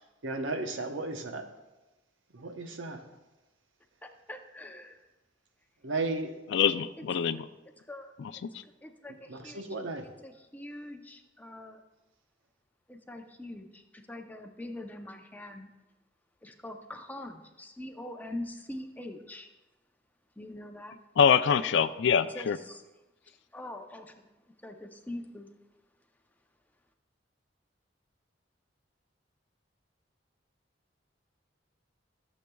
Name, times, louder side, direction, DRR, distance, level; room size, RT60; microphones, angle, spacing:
voice 1, 0.2-1.5 2.3-3.0 5.8-6.3 9.3-10.1, right 3 dB, 85° right, 5 dB, 0.9 m, -34 dB
voice 2, 4.0-5.0 7.0-7.1 7.9-8.1 8.6-9.6 10.0-11.8 12.9-15.7 16.4-19.5 20.4-21.0 22.3-22.8 23.5-24.3 24.6-25.5, left 1 dB, 10° left, 4 dB, 0.6 m, -43 dB
voice 3, 6.5-7.5 8.4-8.5 21.2-22.6, left 7 dB, 65° left, 12 dB, 0.4 m, -24 dB
14.5 x 7.4 x 2.3 m, 1.1 s
head